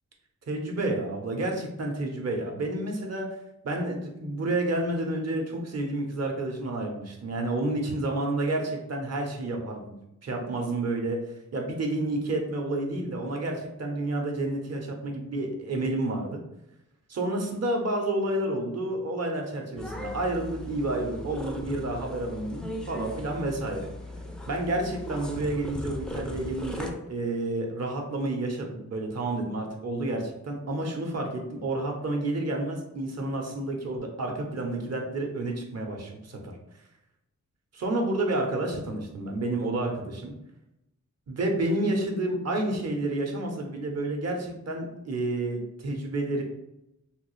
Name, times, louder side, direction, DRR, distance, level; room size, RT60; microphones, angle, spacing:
voice 1, 0.5-3.4 3.6-9.9 10.2-11.2 11.5-16.4 17.1-23.9 24.4-36.5 37.7-40.3 41.3-46.4, right 2 dB, 55° right, 2 dB, 0.7 m, -30 dB
sound 1, 19.8-26.9, left 1 dB, 5° left, 0.3 m, -38 dB
3.5 x 2.3 x 3.1 m, 0.87 s
wide cardioid pair, 125°, 30 cm